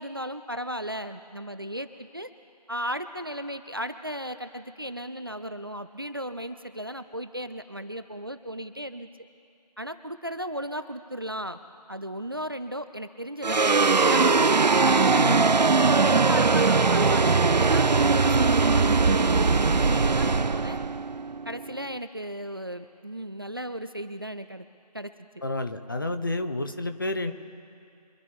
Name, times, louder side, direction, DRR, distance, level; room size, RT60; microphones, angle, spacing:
voice 1, 0.0-2.3 2.7-9.1 9.8-11.6 11.9-15.3 15.9-20.8 21.5-24.7 24.9-25.1 26.2-26.3, equal, 35° right, 10 dB, 0.4 m, -35 dB
sound 1, 13.4-22.0, right 4 dB, 90° right, 0.5 m, -21 dB
voice 2, 25.4-27.3, left 2 dB, 30° left, 7 dB, 0.7 m, -29 dB
25.5 x 11.5 x 3.4 m, 2.5 s
figure-of-eight pair, 160°, 21 cm